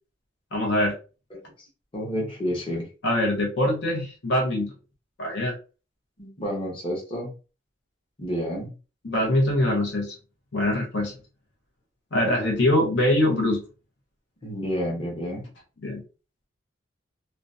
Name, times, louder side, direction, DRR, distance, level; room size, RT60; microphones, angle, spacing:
voice 1, 0.5-0.9 3.0-4.7 5.2-5.5 9.0-10.1 10.5-11.1 12.1-13.6 15.8-16.0, left 1 dB, 65° left, 0 dB, 0.7 m, -23 dB
voice 2, 1.9-2.9 6.2-7.3 8.2-8.7 14.4-15.5, equal, 30° left, -2 dB, 0.9 m, -30 dB
2.4 x 2.1 x 2.5 m, 0.34 s
head